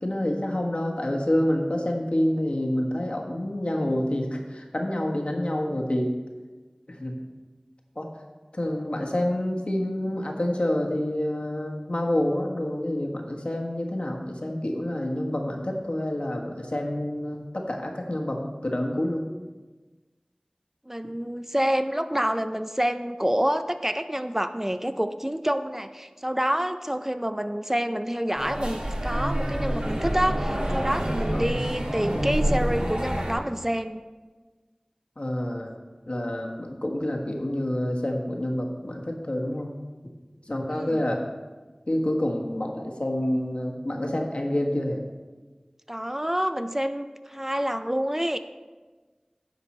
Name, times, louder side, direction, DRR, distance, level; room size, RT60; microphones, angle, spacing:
voice 1, 0.0-6.1 6.9-7.2 7.9-8.1 8.5-19.2 31.3-31.5 35.2-35.7 36.1-39.7 40.5-41.2 41.9-45.0, left 1 dB, 60° left, 0 dB, 1.4 m, -28 dB
voice 2, 20.9-34.0 40.7-41.0 45.9-48.4, equal, 15° right, 9 dB, 0.4 m, -27 dB
sound 1, 28.4-33.3, equal, 60° right, 1.9 m, -27 dB
10.5 x 7.0 x 4.3 m, 1.3 s
wide cardioid pair, 40°, 2 cm